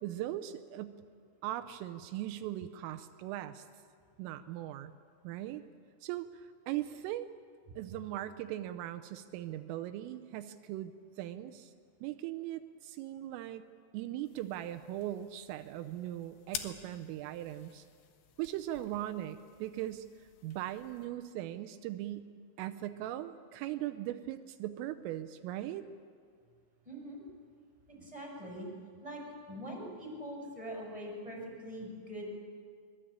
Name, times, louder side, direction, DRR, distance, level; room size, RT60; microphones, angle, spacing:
voice 1, 0.0-1.0 1.4-3.6 4.2-4.9 5.2-5.6 6.0-7.3 7.8-11.7 12.0-13.6 13.9-17.9 18.4-20.1 20.4-22.3 22.6-25.9, right 13 dB, 85° right, 10 dB, 3.4 m, -39 dB
sound 1, 14.3-21.1, left 9 dB, 65° left, 2.8 m, -49 dB
voice 2, 26.8-27.2 27.9-28.7 29.0-29.2 29.5-32.4, equal, 5° right, -1 dB, 6.2 m, -43 dB
24.0 x 22.5 x 8.9 m, 2.1 s
omnidirectional pair, 5.8 m